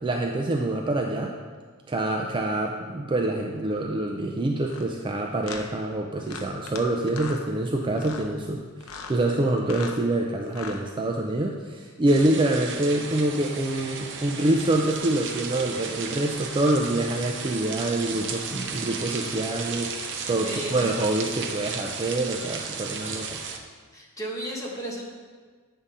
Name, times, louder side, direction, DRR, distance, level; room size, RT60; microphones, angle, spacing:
voice 1, 0.0-1.3 1.9-19.9 20.3-23.4, right 1 dB, 20° right, 1 dB, 0.4 m, -26 dB
sound 1, 4.7-4.9 5.4-5.7 6.3-6.8 7.1-7.4 8.0-8.3 8.8-9.2 9.6-10.0 10.5-10.8, left 5 dB, 75° left, 0.7 m, -38 dB
sound 2, 12.1-23.6, right 5 dB, 55° right, 0.7 m, -34 dB
voice 2, 20.4-20.9 23.9-25.0, right 1 dB, 15° left, -4 dB, 1.3 m, -34 dB
8.3 x 3.7 x 5.5 m, 1.5 s
head